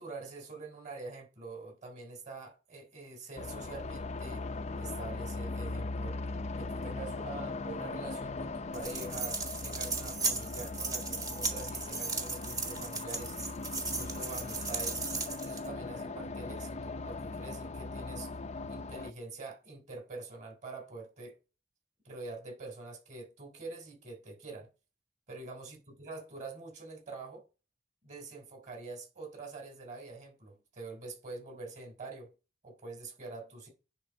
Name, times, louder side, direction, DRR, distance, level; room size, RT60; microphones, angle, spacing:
voice 1, 0.0-4.5 4.8-6.2 6.6-13.4 13.7-15.0 15.4-18.3 18.7-21.4 22.0-24.7 25.3-27.4 28.0-32.3 32.6-33.7, right 3 dB, 40° right, 3.5 m, -45 dB
sound 1, 3.3-19.1, left 3 dB, 40° left, 0.5 m, -39 dB
sound 2, 8.7-15.7, right 3 dB, 20° right, 1.2 m, -36 dB
10.0 x 3.8 x 5.2 m
head